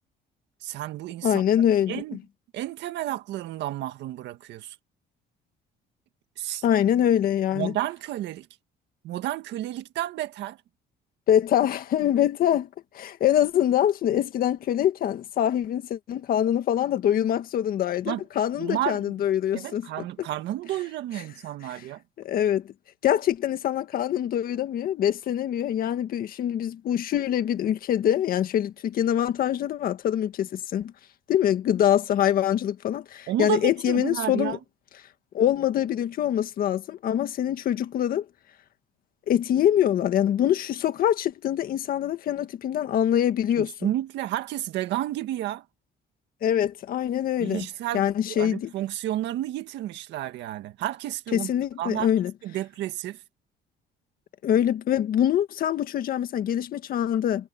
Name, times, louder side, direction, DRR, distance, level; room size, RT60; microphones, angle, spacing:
voice 1, 0.6-1.4 1.9-2.2 2.5-4.8 6.4-6.6 7.5-8.5 9.0-10.6 18.1-18.2 18.6-19.0 19.5-22.0 33.3-34.6 43.6-45.6 47.4-51.5 51.8-52.1 52.4-53.2, right 13 dB, 75° right, 1.8 m, -31 dB
voice 2, 1.2-2.2 6.6-7.7 11.3-12.7 12.9-20.3 22.2-22.7 23.0-30.9 31.3-34.6 35.3-38.2 39.3-43.9 46.4-47.7 47.9-48.7 51.3-52.3 54.4-57.5, left 10 dB, 50° left, 1.7 m, -24 dB
cardioid pair, 160°, 18 cm